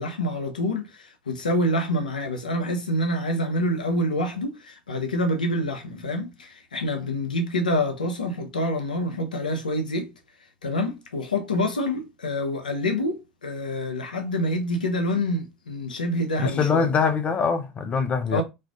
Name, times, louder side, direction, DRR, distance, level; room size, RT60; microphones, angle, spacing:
voice 1, 0.0-10.1 10.6-16.9 18.3-18.4, left 1 dB, 85° left, 0.5 m, -27 dB
voice 2, 16.4-18.4, left 5 dB, 30° left, 0.4 m, -23 dB
2.4 x 2.4 x 2.2 m
figure-of-eight pair, 75°, 4 cm